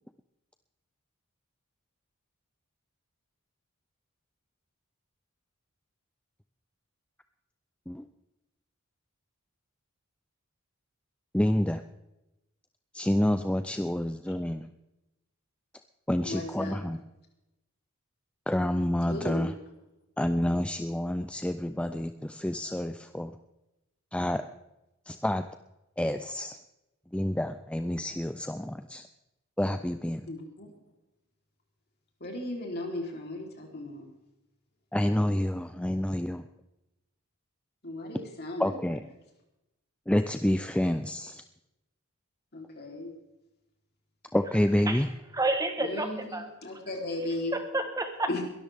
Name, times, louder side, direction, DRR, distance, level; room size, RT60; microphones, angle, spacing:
voice 1, 11.3-11.8 12.9-14.7 16.1-17.0 18.5-19.5 20.2-23.3 24.1-24.4 25.1-25.4 26.0-26.6 27.1-29.1 29.6-30.3 34.9-36.5 38.6-39.0 40.1-41.4 44.3-45.1, left 1 dB, 5° left, 9 dB, 0.4 m, -28 dB
voice 2, 16.2-16.8 19.1-19.5 30.3-30.7 32.2-34.1 37.8-39.0 42.5-43.1 45.8-47.5 48.3-48.4, left 2 dB, 50° left, 0 dB, 3.7 m, -36 dB
voice 3, 45.3-46.8 47.5-48.4, right 2 dB, 15° right, 6 dB, 1.3 m, -30 dB
22.0 x 13.0 x 3.6 m, 0.93 s
head